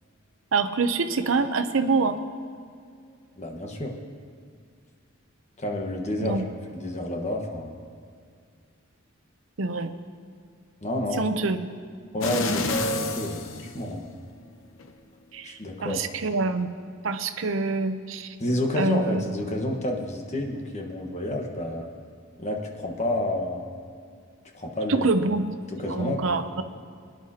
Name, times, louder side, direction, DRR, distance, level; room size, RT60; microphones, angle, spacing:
voice 1, 0.5-2.2 6.2-6.4 9.6-9.9 11.2-11.6 15.3-16.7 17.0-18.4 18.8-19.2 24.9-26.6, right 3 dB, 70° right, 8 dB, 0.7 m, -26 dB
voice 2, 3.4-3.9 5.6-6.5 6.7-7.8 10.8-11.2 12.1-14.0 15.4-16.1 18.4-21.9 22.4-23.7 24.5-25.1 25.8-26.4, left 1 dB, 35° left, 1 dB, 1.3 m, -30 dB
sound 1, 12.2-14.3 14.8-14.9, left 2 dB, 70° left, 0.9 m, -29 dB
22.5 x 10.5 x 2.9 m, 2.2 s
head